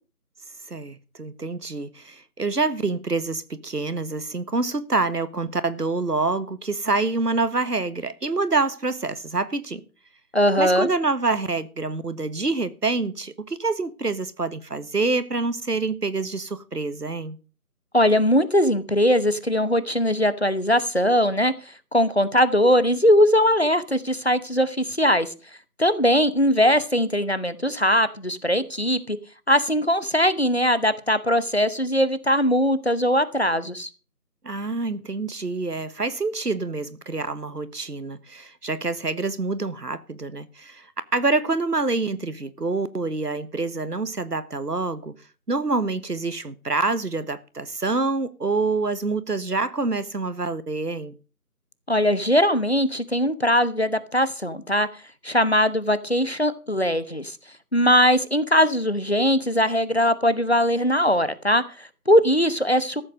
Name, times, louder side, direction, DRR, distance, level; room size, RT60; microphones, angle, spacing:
voice 1, 0.7-9.8 10.6-17.4 34.4-40.8 41.1-45.1 45.5-51.1, right 3 dB, 80° right, 1.6 m, -26 dB
voice 2, 10.3-10.9 17.9-21.5 21.9-25.3 25.8-29.2 29.5-33.9 51.9-54.9 55.2-57.4 57.7-63.0, equal, 40° left, 1.1 m, -20 dB
14.0 x 8.0 x 6.4 m
figure-of-eight pair, 175°, 46 cm